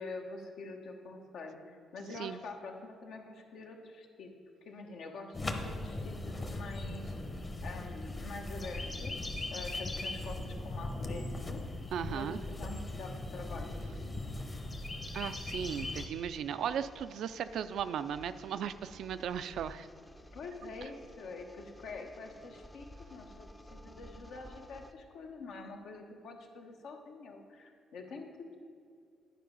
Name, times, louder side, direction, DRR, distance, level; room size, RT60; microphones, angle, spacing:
voice 1, 0.0-4.3 4.7-7.2 7.6-11.6 12.1-13.8 20.3-28.6, left 3 dB, 75° left, 2 dB, 1.1 m, -46 dB
sound 1, 5.3-16.1, left 2 dB, 30° left, 0.9 m, -39 dB
voice 2, 11.9-12.4 15.1-19.9, right 8 dB, 75° right, 12 dB, 0.3 m, -36 dB
sound 2, 16.1-24.9, left 1 dB, 10° left, 0.5 m, -54 dB
10.0 x 4.8 x 5.4 m, 2.3 s
cardioid pair, 90°, 0 cm